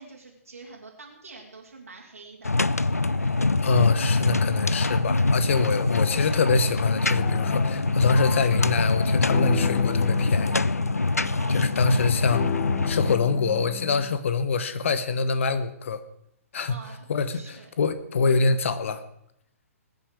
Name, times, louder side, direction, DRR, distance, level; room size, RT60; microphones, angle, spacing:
voice 1, 0.0-2.5 11.3-12.2 16.7-17.0 17.3-17.7, right 4 dB, 75° right, -4 dB, 3.0 m, -46 dB
sound 1, 2.4-13.2, left 3 dB, 85° left, 0.4 m, -24 dB
sound 2, 2.7-10.6 11.2-12.5 13.1-13.2, right 3 dB, 25° right, 2.7 m, -49 dB
voice 2, 3.6-10.6 11.5-12.4 12.8-16.0 16.5-16.7 17.1-19.0, left 4 dB, 55° left, 12 dB, 1.3 m, -25 dB
sound 3, 7.1-14.2, left 17 dB, 35° left, 0.6 m, -35 dB
21.0 x 9.5 x 4.7 m, 0.76 s
figure-of-eight pair, 120°, 8 cm